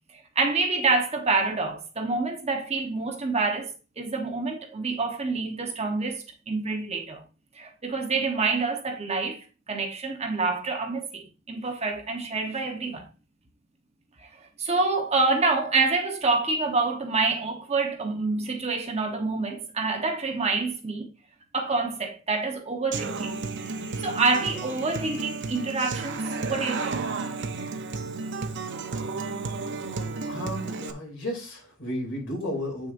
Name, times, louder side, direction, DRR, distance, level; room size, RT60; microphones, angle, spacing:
voice 1, 0.3-7.2 7.5-13.1 14.6-21.1 21.5-23.3 24.0-27.0, right 3 dB, 30° right, 1.1 m, -27 dB
Human voice / Acoustic guitar, 22.9-30.9, right 4 dB, 60° right, 0.7 m, -32 dB
voice 2, 30.2-32.9, left 1 dB, 60° left, 3.1 m, -33 dB
8.4 x 6.4 x 2.6 m
head